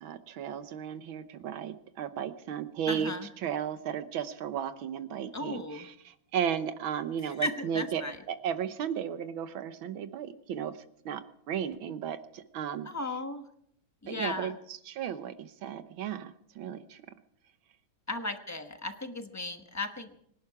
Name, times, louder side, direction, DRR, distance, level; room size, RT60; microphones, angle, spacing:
voice 1, 0.0-10.7 11.1-12.9 14.1-17.0, right 8 dB, 85° right, 11 dB, 1.8 m, -35 dB
voice 2, 2.9-3.3 5.3-5.9 7.2-8.2 12.8-13.4 14.0-14.6 18.1-20.2, left 2 dB, 15° left, 7 dB, 0.7 m, -36 dB
25.0 x 11.5 x 4.8 m, 0.72 s
omnidirectional pair, 2.2 m